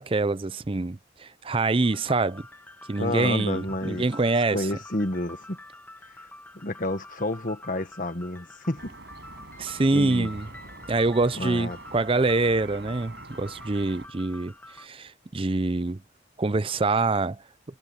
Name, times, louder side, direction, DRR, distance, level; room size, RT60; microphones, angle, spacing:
voice 1, 0.0-2.4 2.9-4.7 9.6-10.5 10.9-16.0 16.4-17.4, right 3 dB, 25° right, 0.5 m, -25 dB
sound 1, 1.8-14.9, left 2 dB, 10° left, 1.2 m, -47 dB
voice 2, 3.0-4.1 4.5-5.6 6.2-6.3 6.5-8.9 9.9-10.3 11.3-11.8, left 1 dB, 45° left, 1.5 m, -30 dB
sound 2, 8.8-14.1, right 2 dB, 55° right, 7.5 m, -45 dB
Boom, 10.0-14.7, equal, 10° right, 5.0 m, -56 dB
head